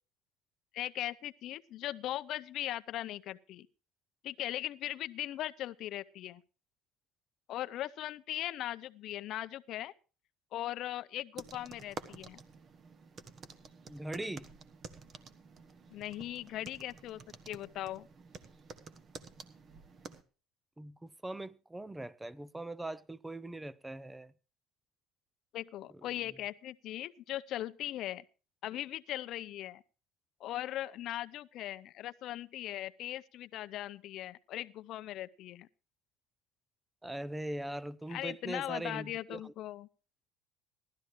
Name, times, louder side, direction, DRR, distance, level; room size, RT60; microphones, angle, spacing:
voice 1, 0.7-3.7 4.2-6.4 7.5-9.9 10.5-12.4 15.9-18.1 25.5-28.2 28.6-29.8 30.4-35.7 38.1-39.9, left 13 dB, 55° left, 0.6 m, -39 dB
sound 1, 11.3-20.2, right 5 dB, 35° right, 1.3 m, -50 dB
voice 2, 13.8-14.5 20.8-24.3 37.0-39.5, right 1 dB, 10° right, 0.5 m, -41 dB
17.5 x 12.5 x 3.1 m
cardioid pair, 120°, 0 cm